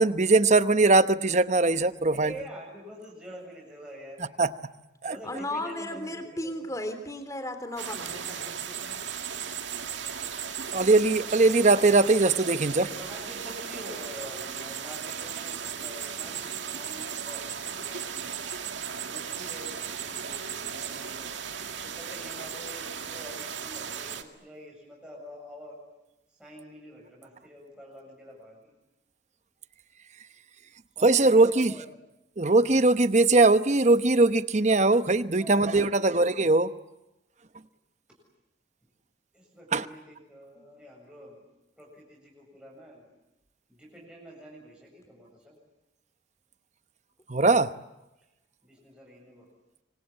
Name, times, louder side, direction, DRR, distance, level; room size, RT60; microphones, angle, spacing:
voice 1, 0.0-2.3 4.4-4.5 5.0-5.1 10.7-12.9 31.0-31.7 32.4-36.7 39.7-39.9 47.3-47.7, right 3 dB, 40° right, 12 dB, 0.9 m, -21 dB
voice 2, 2.1-4.2 5.0-6.7 12.9-18.6 19.1-21.3 21.8-25.8 26.4-28.7 31.0-31.8 35.3-36.2 39.3-41.4 41.8-43.1 43.7-45.6 48.6-49.5, equal, 5° right, -3 dB, 7.6 m, -46 dB
voice 3, 5.2-8.9, left 1 dB, 20° left, 8 dB, 3.5 m, -35 dB
sound 1, 7.8-24.2, right 7 dB, 85° right, 2.1 m, -36 dB
26.0 x 25.5 x 8.8 m, 0.96 s
head